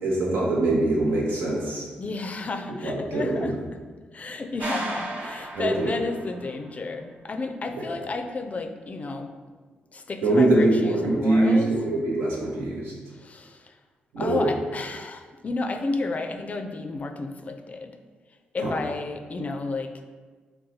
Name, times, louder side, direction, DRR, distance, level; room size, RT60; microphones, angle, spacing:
voice 1, 0.0-1.9 2.8-3.5 5.5-6.0 7.8-7.9 10.2-12.9 14.1-14.5 18.6-18.8, right 2 dB, 80° right, -3 dB, 0.9 m, -23 dB
voice 2, 2.0-3.8 4.1-9.4 9.9-11.7 13.1-13.8 14.2-18.0 18.5-20.0, left 3 dB, 40° left, 6 dB, 0.4 m, -32 dB
sound 1, 4.6-6.6, right 2 dB, 50° right, 0.6 m, -34 dB
3.8 x 2.2 x 4.1 m, 1.4 s
supercardioid pair, 55°, 4 cm